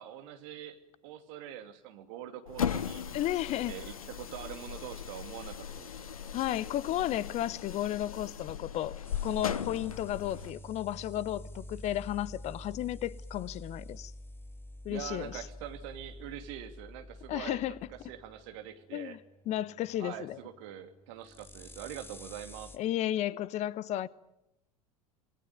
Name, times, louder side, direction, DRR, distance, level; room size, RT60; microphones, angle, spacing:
voice 1, 0.0-3.1 3.7-6.0 14.9-19.2 20.0-22.7, right 11 dB, 55° right, 2.8 m, -44 dB
sound 1, 2.5-10.5, left 8 dB, 75° left, 1.0 m, -38 dB
voice 2, 3.1-3.7 6.3-8.9 9.2-14.1 14.8-15.4 17.3-17.7 18.9-19.2 19.5-20.4 22.7-24.1, left 13 dB, 40° left, 0.9 m, -33 dB
sound 2, 9.0-22.8, equal, 10° left, 2.1 m, -49 dB
27.5 x 19.5 x 9.3 m
figure-of-eight pair, 75°, 18 cm